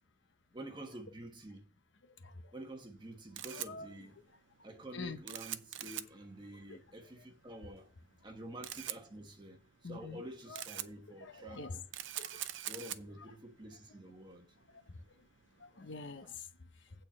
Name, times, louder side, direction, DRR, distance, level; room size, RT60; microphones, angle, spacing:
voice 1, 0.5-1.6 2.5-4.1 4.6-7.9 8.2-11.8 12.6-14.5, right 1 dB, 25° right, 1.3 m, -49 dB
Camera, 3.0-16.3, right 13 dB, 70° right, 0.6 m, -46 dB
voice 2, 3.5-4.1 4.9-5.4 6.7-6.8 9.8-10.2 10.5-11.8 12.2-12.5 13.2-13.4 15.6-16.5, left 4 dB, 65° left, 0.8 m, -47 dB
8.7 x 4.4 x 7.1 m
head